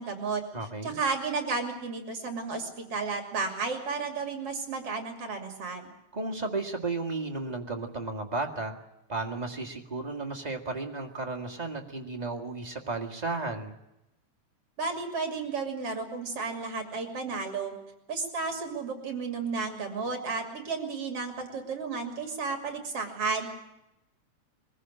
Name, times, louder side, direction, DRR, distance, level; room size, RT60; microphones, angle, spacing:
voice 1, 0.0-0.4 0.8-5.8 14.8-17.7 18.1-23.5, right 4 dB, 50° right, 5 dB, 3.6 m, -33 dB
voice 2, 0.5-1.0 6.1-8.8 9.1-13.7, right 3 dB, 20° right, 2 dB, 1.3 m, -34 dB
22.5 x 15.5 x 8.9 m, 0.92 s
omnidirectional pair, 3.5 m